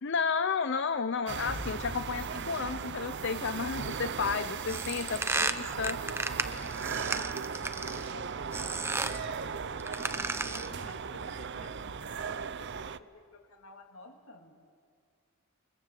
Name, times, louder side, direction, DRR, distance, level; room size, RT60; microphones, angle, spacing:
voice 1, 0.0-6.0, left 5 dB, 55° left, 11 dB, 0.6 m, -32 dB
sound 1, 1.3-13.0, right 6 dB, 55° right, 0.6 m, -37 dB
sound 2, 1.5-4.3, equal, 10° left, 1.4 m, -45 dB
voice 2, 4.2-5.8 6.4-9.7 10.4-14.6, left 2 dB, 80° left, 2 dB, 2.9 m, -53 dB
sound 3, 4.7-8.1 8.5-9.2 9.8-10.8, right 3 dB, 10° right, 0.7 m, -34 dB
28.0 x 24.0 x 7.6 m, 2.2 s
head